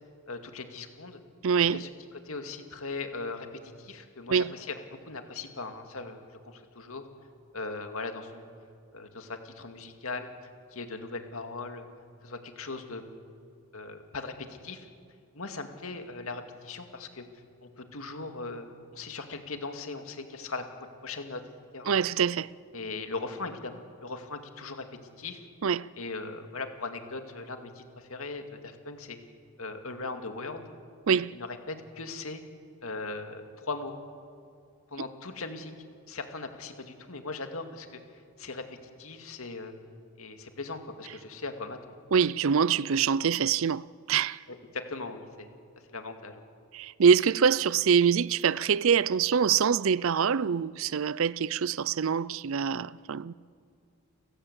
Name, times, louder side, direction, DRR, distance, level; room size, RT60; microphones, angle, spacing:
voice 1, 0.3-1.2 1.7-1.9 2.2-7.1 7.5-8.5 8.9-10.3 10.7-11.9 12.2-13.0 13.7-14.9 15.3-17.3 17.6-21.4 21.7-22.0 22.7-24.9 25.2-25.4 26.0-29.2 29.6-30.6 31.3-32.4 32.8-33.9 34.9-35.7 36.1-38.0 38.4-38.6 39.0-39.7 40.2-42.0 44.5-45.5 45.9-46.5, left 3 dB, 70° left, 2.3 m, -39 dB
voice 2, 1.4-1.8 4.3-4.5 21.9-22.5 25.6-25.9 31.1-31.3 42.1-44.4 46.7-53.3, right 7 dB, 65° right, 0.5 m, -25 dB
30.0 x 16.0 x 8.1 m
head